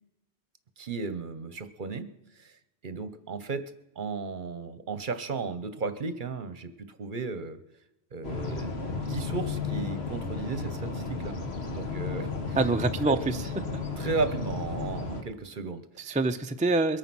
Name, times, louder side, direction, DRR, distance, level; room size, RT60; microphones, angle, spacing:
voice 1, 0.8-7.6 8.1-11.4 11.7-12.6 13.1-13.2 14.0-16.2, right 4 dB, 50° right, 12 dB, 1.0 m, -35 dB
sound 1, 8.2-15.2, left 4 dB, 70° left, 1.7 m, -33 dB
voice 2, 12.6-13.5 16.0-17.0, right 3 dB, 10° right, 7 dB, 0.5 m, -26 dB
22.0 x 9.5 x 6.1 m, 0.95 s
omnidirectional pair, 1.1 m